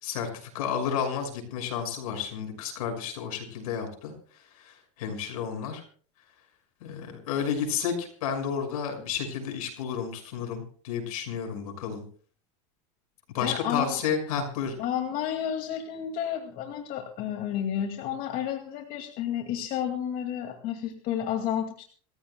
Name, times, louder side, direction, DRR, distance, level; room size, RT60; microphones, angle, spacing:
voice 1, 0.0-4.1 4.5-5.8 6.8-12.0 13.3-14.8, left 7 dB, 85° left, 5 dB, 6.0 m, -31 dB
voice 2, 13.4-14.0 14.8-21.8, left 9 dB, 55° left, 4 dB, 2.3 m, -31 dB
27.5 x 15.0 x 2.3 m, 0.43 s
supercardioid pair, 115°, 18 cm